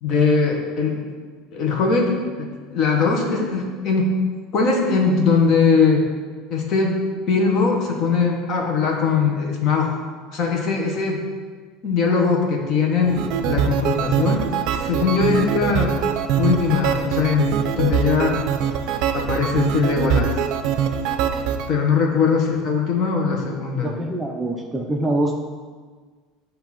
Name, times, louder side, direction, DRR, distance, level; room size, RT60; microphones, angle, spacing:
voice 1, 0.0-1.1 1.5-4.2 4.5-6.0 6.5-10.0 10.3-11.2 11.8-14.4 14.7-16.0 16.4-18.5 19.1-20.4 21.7-23.9, left 5 dB, 45° left, 1 dB, 1.1 m, -20 dB
sound 1, 13.0-21.7, right 8 dB, 60° right, 0.4 m, -23 dB
voice 2, 23.8-25.4, right 1 dB, 10° right, 1 dB, 0.5 m, -24 dB
8.3 x 2.8 x 5.9 m, 1.5 s
cardioid pair, 145°, 0 cm